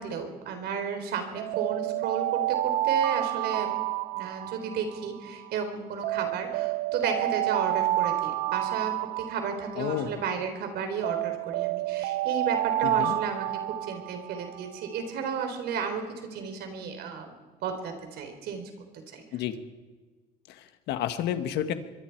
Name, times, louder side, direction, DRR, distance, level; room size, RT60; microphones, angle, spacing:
voice 1, 0.0-3.7 4.1-17.3 17.6-19.2, right 6 dB, 75° right, 6 dB, 3.8 m, -33 dB
Alarm, 1.3-5.5 6.0-10.5 11.0-14.8, right 15 dB, 90° right, 0.6 m, -29 dB
voice 2, 9.8-10.2 12.8-13.2 19.3-19.5 20.5-21.7, left 10 dB, 80° left, 9 dB, 1.6 m, -31 dB
25.5 x 22.0 x 4.7 m, 1.4 s
cardioid pair, 110°, 17 cm